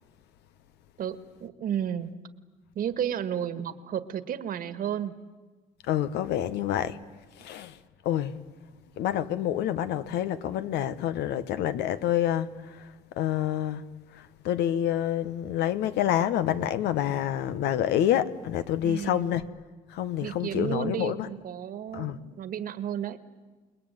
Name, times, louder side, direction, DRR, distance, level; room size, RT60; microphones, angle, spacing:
voice 1, 1.0-2.1 2.8-5.1 18.8-19.3 20.2-23.2, right 9 dB, 60° right, 1.8 m, -32 dB
voice 2, 5.9-7.0 7.4-7.8 8.0-8.4 9.0-19.5 19.9-21.3 21.9-22.2, left 11 dB, 80° left, 1.3 m, -28 dB
29.0 x 20.5 x 9.2 m
cardioid pair, 110°, 17 cm